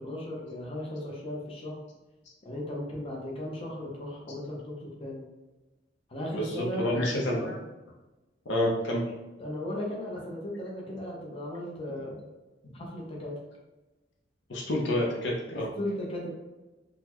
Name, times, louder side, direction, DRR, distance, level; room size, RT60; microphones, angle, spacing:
voice 1, 0.0-1.7 2.4-5.2 6.1-7.2 9.4-12.3 12.7-13.4 15.5-16.3, left 1 dB, 30° left, -3 dB, 0.7 m, -36 dB
voice 2, 6.3-7.6 8.5-9.0 14.5-15.7, left 1 dB, 65° left, -2 dB, 0.6 m, -28 dB
3.8 x 2.1 x 2.9 m, 1.1 s
head